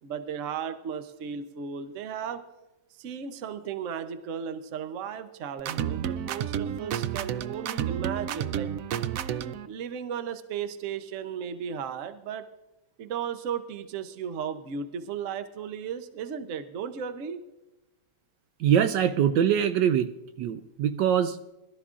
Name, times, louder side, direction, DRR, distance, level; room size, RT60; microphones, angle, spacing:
voice 1, 0.0-2.4 2.9-8.7 9.7-12.5 13.0-17.5, right 7 dB, 55° right, 10 dB, 0.9 m, -35 dB
sound 1, 5.6-9.7, right 9 dB, 90° right, 0.7 m, -31 dB
voice 2, 18.6-20.1 20.4-21.4, right 9 dB, 75° right, 10 dB, 1.1 m, -23 dB
21.0 x 12.5 x 2.5 m, 0.98 s
omnidirectional pair, 2.0 m